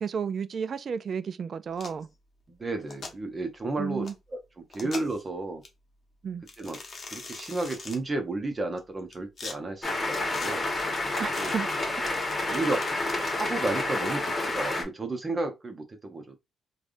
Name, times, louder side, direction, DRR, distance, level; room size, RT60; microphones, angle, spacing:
voice 1, 0.0-2.1 3.8-4.1 6.2-6.4 11.2-11.7 12.5-12.6, right 6 dB, 50° right, 0.3 m, -32 dB
sound 1, 1.7-2.0 2.8-3.1 4.0-4.1 4.7-5.2 5.6-5.7 6.5-8.0 8.8-9.6 10.1-10.5 11.3-11.5 12.1-13.2, left 4 dB, 45° left, 0.9 m, -41 dB
voice 2, 2.5-5.6 6.6-6.8 7.1-10.7 11.4-11.5 12.5-13.0 13.3-16.4, right 2 dB, 30° right, 0.9 m, -33 dB
sound 2, 9.8-14.8, left 2 dB, 25° left, 1.3 m, -29 dB
3.3 x 2.4 x 2.6 m
cardioid pair, 85°, 0 cm